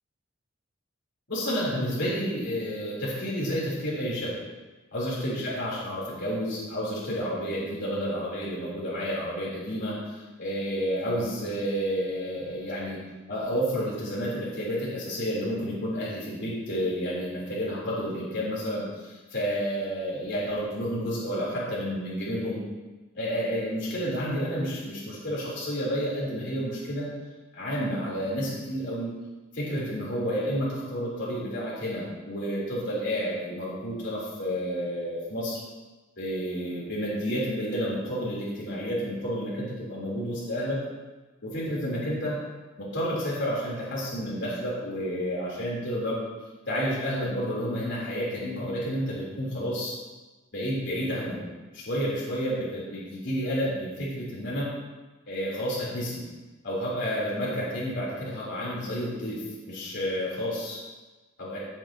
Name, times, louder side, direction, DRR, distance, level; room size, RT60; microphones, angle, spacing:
voice 1, 1.3-4.4 4.9-13.0 13.3-22.6 23.1-27.1 27.5-29.2 29.5-35.6 36.2-40.8 41.4-42.4 42.8-46.2 46.7-49.9 50.5-51.5 51.7-54.7 55.3-56.2 56.6-60.8 61.4-61.6, equal, 60° left, -7 dB, 3.6 m, -30 dB
15.5 x 8.7 x 3.0 m, 1.2 s
head